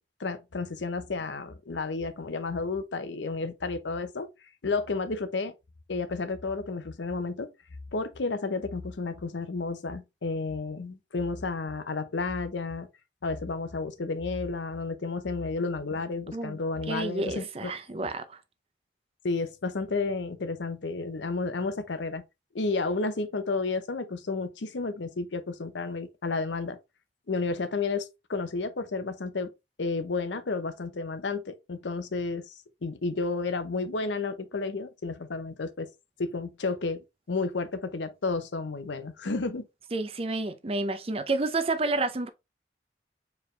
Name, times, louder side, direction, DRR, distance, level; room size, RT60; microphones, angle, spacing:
voice 1, 0.2-4.3 4.6-5.5 5.9-7.5 7.9-12.9 13.2-17.7 19.2-22.2 22.5-26.8 27.3-29.5 29.8-32.5 32.8-35.9 36.2-39.7, left 3 dB, 85° left, 0.7 m, -31 dB
voice 2, 16.9-18.4 39.9-42.3, right 2 dB, 30° right, 0.5 m, -30 dB
4.6 x 3.4 x 3.2 m
head